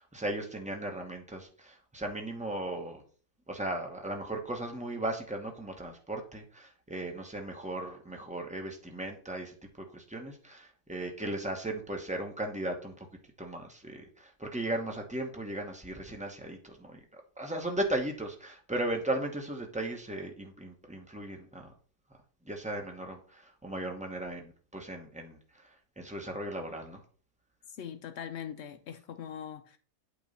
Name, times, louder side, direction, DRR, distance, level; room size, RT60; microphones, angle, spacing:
voice 1, 0.0-3.0 3.5-9.5 9.9-13.1 13.4-21.7 22.4-25.7 26.0-27.0, right 1 dB, 5° right, 0.7 m, -37 dB
voice 2, 27.7-29.8, left 8 dB, 85° left, 0.6 m, -41 dB
8.5 x 3.1 x 5.2 m
omnidirectional pair, 1.7 m